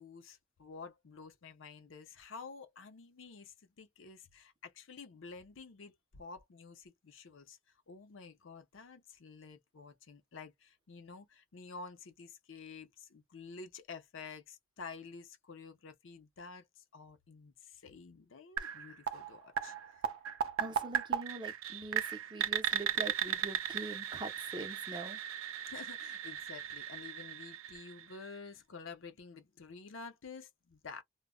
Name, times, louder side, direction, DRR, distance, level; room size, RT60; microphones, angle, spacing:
voice 1, 0.0-7.6 7.9-20.0 25.7-31.0, left 4 dB, 65° left, 0.5 m, -50 dB
sound 1, 18.6-28.4, right 9 dB, 75° right, 0.4 m, -37 dB
voice 2, 20.6-25.2, right 2 dB, 20° right, 0.5 m, -43 dB
2.0 x 2.0 x 3.6 m
head